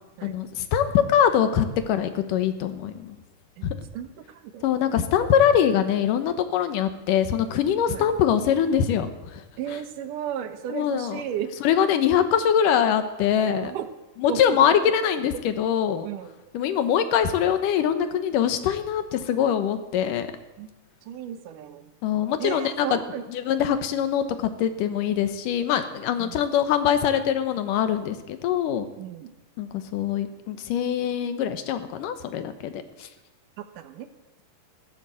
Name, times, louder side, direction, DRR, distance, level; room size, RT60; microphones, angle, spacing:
voice 1, 0.2-3.2 3.6-3.8 4.6-9.4 10.7-11.2 11.6-13.7 14.2-16.1 16.5-20.3 22.0-23.0 23.3-28.9 29.6-33.1, left 9 dB, 80° left, 10 dB, 2.7 m, -23 dB
voice 2, 3.9-4.6 7.9-8.1 9.6-11.5 13.6-13.9 14.3-14.6 16.0-16.3 20.6-20.7 21.1-21.9 22.4-23.2 26.2-26.4 29.0-29.3 33.6-34.1, right 9 dB, 80° right, 9 dB, 2.5 m, -34 dB
15.5 x 11.5 x 7.6 m, 1.0 s
omnidirectional pair, 3.7 m